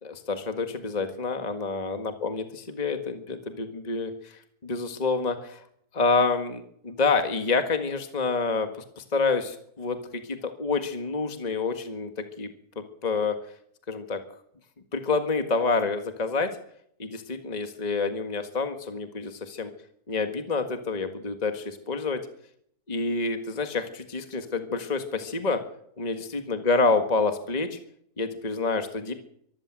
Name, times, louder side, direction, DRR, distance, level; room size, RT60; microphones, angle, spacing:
voice 1, 0.0-5.6 5.9-8.7 9.0-12.5 12.8-13.4 13.9-14.2 14.9-16.5 17.0-19.7 20.1-22.2 22.9-25.6 26.0-27.8 28.2-29.1, left 4 dB, 25° left, 7 dB, 1.8 m, -28 dB
25.0 x 14.5 x 7.7 m, 0.69 s
omnidirectional pair, 1.7 m